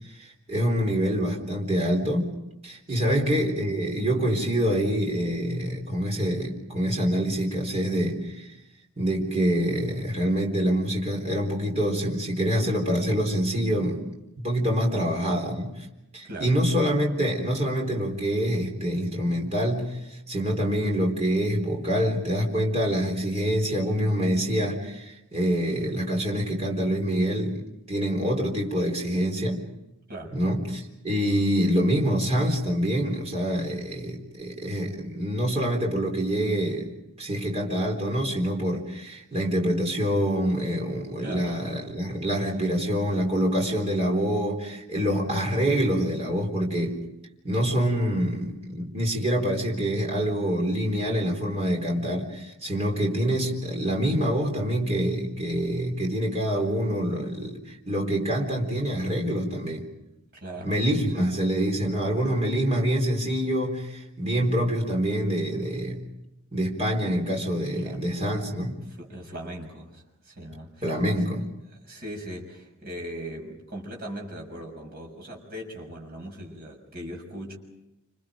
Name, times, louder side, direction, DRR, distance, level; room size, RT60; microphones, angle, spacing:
voice 1, 0.2-2.4 2.6-8.5 9.0-14.0 14.4-15.9 16.1-27.6 27.9-29.6 30.3-47.0 47.4-59.9 60.6-66.0 66.5-68.8 70.8-71.5, equal, 30° right, 4.0 m, -26 dB
voice 2, 16.2-16.5 30.1-30.4 41.2-41.6 60.3-60.8 61.1-61.3 67.8-68.1 68.7-71.2 71.7-77.6, right 1 dB, 45° right, 6.5 m, -39 dB
28.5 x 27.5 x 5.1 m
head